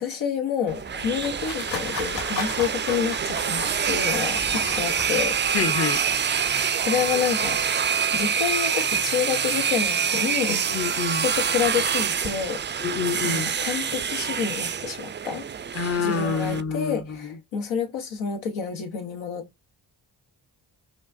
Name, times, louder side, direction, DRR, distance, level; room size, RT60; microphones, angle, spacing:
voice 1, 0.0-5.4 6.8-7.6 8.1-10.6 11.1-12.6 13.2-15.5 16.0-19.5, left 7 dB, 90° left, 1.0 m, -28 dB
sound 1, 0.7-5.6, left 4 dB, 65° left, 2.3 m, -37 dB
sound 2, 0.7-16.6, right 7 dB, 25° right, 0.3 m, -26 dB
voice 2, 5.5-6.0 10.5-11.3 12.8-13.5 15.7-17.4, left 5 dB, 30° left, 0.6 m, -27 dB
5.0 x 2.4 x 2.5 m
supercardioid pair, 45°, 46 cm